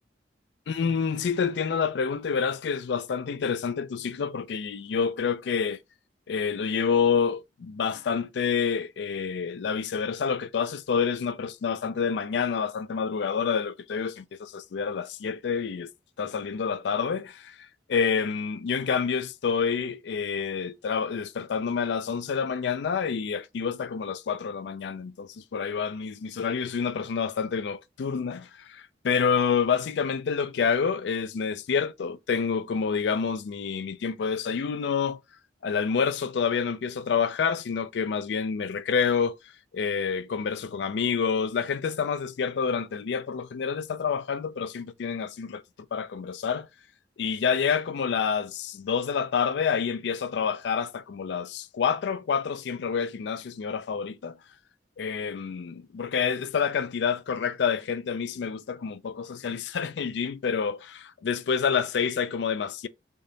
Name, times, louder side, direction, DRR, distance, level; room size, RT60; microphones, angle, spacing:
voice 1, 0.7-5.8 6.3-15.9 16.2-17.6 17.9-35.2 35.6-39.4 39.7-45.6 45.9-46.7 47.2-54.4 55.0-62.9, left 6 dB, 70° left, 0.4 m, -28 dB
3.5 x 2.7 x 3.8 m
head